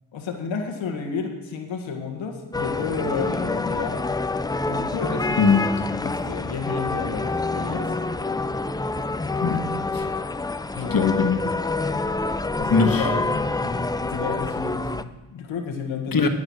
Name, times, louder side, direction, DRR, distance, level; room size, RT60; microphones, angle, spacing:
voice 1, 0.1-4.0 4.7-5.6 6.0-7.9 10.7-11.0 12.6-16.2, left 5 dB, 85° left, 2 dB, 1.7 m, -31 dB
sound 1, 2.5-15.0, left 3 dB, 10° left, 0.4 m, -27 dB
voice 2, 9.4-10.0 10.9-11.4 12.7-13.1 16.1-16.3, left 5 dB, 50° left, 5 dB, 1.6 m, -20 dB
9.8 x 9.6 x 6.3 m, 1.1 s
cardioid pair, 65°, 45 cm